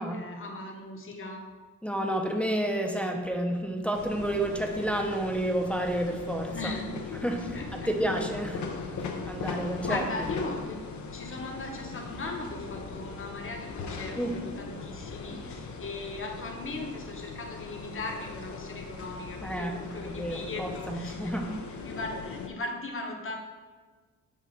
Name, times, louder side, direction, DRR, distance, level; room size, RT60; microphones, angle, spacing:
voice 1, 0.0-1.4 6.5-6.9 7.5-7.9 9.8-10.8 11.1-21.3 21.7-23.4, left 2 dB, 40° left, 2 dB, 1.1 m, -38 dB
voice 2, 1.8-6.7 7.2-8.6 9.3-10.0 14.2-14.4 19.4-21.5, right 1 dB, 5° left, 1 dB, 0.7 m, -30 dB
sound 1, 3.9-22.5, left 4 dB, 65° left, 0.7 m, -39 dB
7.4 x 2.5 x 5.6 m, 1.4 s
cardioid pair, 90°, 31 cm